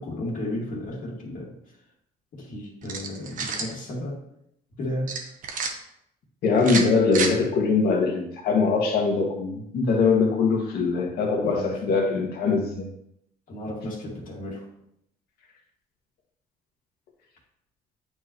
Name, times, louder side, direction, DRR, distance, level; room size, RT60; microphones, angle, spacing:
voice 1, 0.0-1.5 2.3-4.2 4.8-5.1 11.4-11.8 13.5-14.7, left 1 dB, 55° left, -4 dB, 2.0 m, -33 dB
sound 1, 2.8-3.7 5.1-5.7 6.6-7.3, right 5 dB, 50° right, 1.1 m, -29 dB
voice 2, 6.4-12.9, left 4 dB, 70° left, 1 dB, 1.8 m, -22 dB
8.6 x 4.8 x 3.0 m, 0.75 s
cardioid pair, 110°, 17 cm